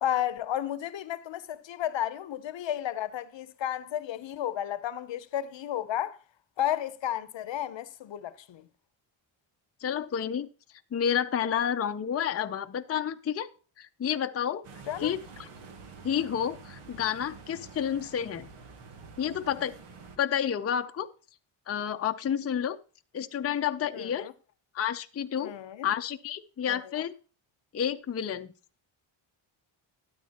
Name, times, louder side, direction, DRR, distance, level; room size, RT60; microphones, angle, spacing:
voice 1, 0.0-6.2 6.6-8.6 14.9-15.1 23.9-24.3 25.4-25.9 26.7-27.0, left 11 dB, 65° left, 0.8 m, -33 dB
voice 2, 9.8-10.5 10.9-13.5 13.8-14.6 15.0-15.5 16.0-18.5 19.2-19.7 20.2-21.1 21.7-22.8 23.1-24.3 24.7-25.5 25.8-27.1 27.7-28.5, left 9 dB, 30° left, 0.6 m, -30 dB
sound 1, 14.6-20.2, right 4 dB, 85° right, 1.5 m, -48 dB
12.5 x 8.8 x 2.9 m
cardioid pair, 90°, 49 cm